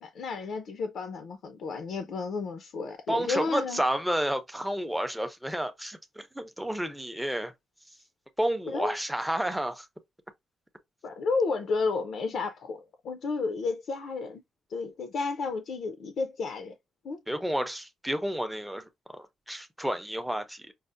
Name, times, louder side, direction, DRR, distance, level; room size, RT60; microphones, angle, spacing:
voice 1, 0.0-3.8 8.7-8.9 11.0-12.8 13.0-14.4 14.7-16.7 17.0-17.2, left 4 dB, 65° left, 0.5 m, -32 dB
voice 2, 3.1-7.5 8.4-9.9 17.3-20.7, right 1 dB, 5° right, 0.5 m, -31 dB
5.3 x 2.0 x 2.5 m
cardioid pair, 140°, 0 cm